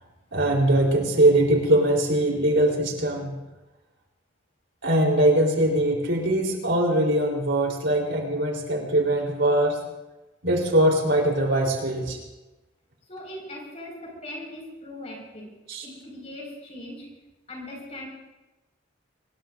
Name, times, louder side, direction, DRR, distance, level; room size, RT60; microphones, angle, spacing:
voice 1, 0.3-3.4 4.8-9.8 10.4-12.2 15.7-15.8, right 1 dB, 75° right, 0 dB, 3.8 m, -22 dB
voice 2, 13.1-15.5 15.8-17.1 17.5-18.1, left 1 dB, 35° left, 0 dB, 5.3 m, -39 dB
24.0 x 20.5 x 2.6 m, 1.0 s
head